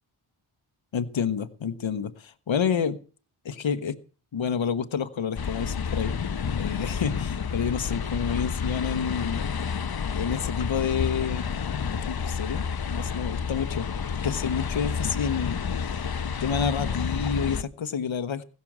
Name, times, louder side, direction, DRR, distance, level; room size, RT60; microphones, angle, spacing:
voice 1, 0.9-3.0 3.4-4.0 4.3-6.1 6.6-9.4 10.1-11.5 11.9-13.9 14.2-18.4, left 7 dB, 70° left, 11 dB, 1.2 m, -29 dB
sound 1, 5.4-17.6, left 6 dB, 50° left, 0.9 m, -30 dB
16.0 x 6.9 x 7.3 m, 0.39 s
cardioid pair, 45°, 49 cm